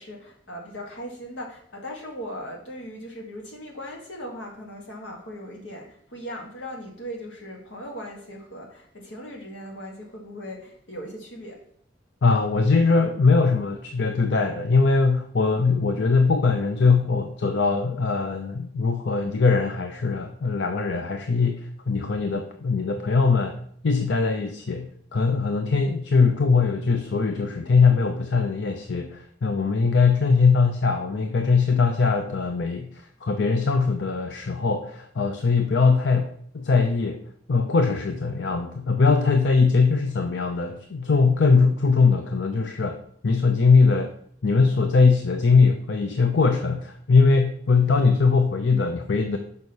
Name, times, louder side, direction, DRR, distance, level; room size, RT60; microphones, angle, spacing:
voice 1, 0.0-11.6, equal, 85° left, 1 dB, 1.9 m, -38 dB
voice 2, 12.2-23.5 23.8-37.2 37.5-44.1 44.4-49.4, left 4 dB, 70° left, 6 dB, 0.6 m, -21 dB
6.3 x 5.3 x 5.4 m, 0.65 s
head